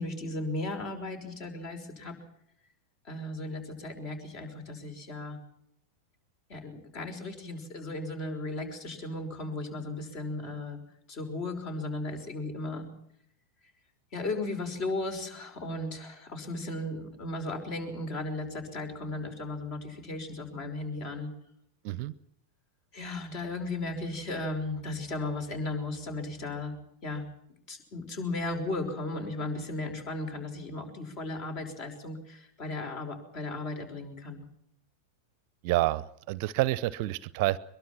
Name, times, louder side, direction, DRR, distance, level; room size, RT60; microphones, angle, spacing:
voice 1, 0.0-2.2 3.0-5.4 6.5-10.8 11.1-12.9 14.1-21.3 22.9-26.7 27.0-27.3 27.7-34.4, left 2 dB, 40° left, 7 dB, 5.7 m, -36 dB
voice 2, 35.6-37.6, right 17 dB, 45° right, 21 dB, 0.7 m, -28 dB
23.0 x 22.5 x 6.0 m, 0.73 s
figure-of-eight pair, 90°, 0 cm